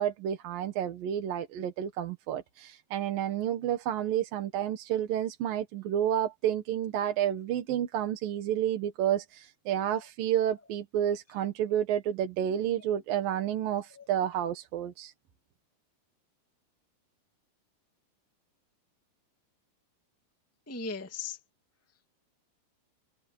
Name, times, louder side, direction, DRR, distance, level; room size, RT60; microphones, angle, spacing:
voice 1, 0.0-15.1, right 10 dB, 60° right, 2.8 m, -30 dB
voice 2, 12.8-13.2 13.9-14.1 20.7-21.4, left 4 dB, 10° left, 0.7 m, -39 dB
omnidirectional pair, 5.0 m